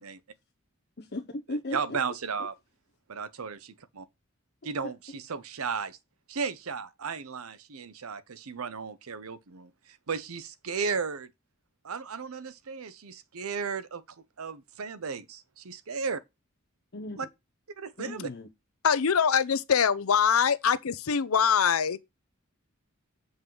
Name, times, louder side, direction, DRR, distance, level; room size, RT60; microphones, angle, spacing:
voice 1, 1.0-1.8 16.9-17.2 18.0-18.5, left 1 dB, 50° left, 0.9 m, -36 dB
voice 2, 1.5-2.5 3.1-4.1 4.6-6.0 6.3-11.3 11.8-14.0 14.4-16.2 17.2-17.3 17.8-18.3, right 5 dB, 90° right, 0.7 m, -35 dB
voice 3, 18.8-22.0, left 7 dB, 90° left, 0.7 m, -23 dB
7.5 x 5.2 x 3.9 m
head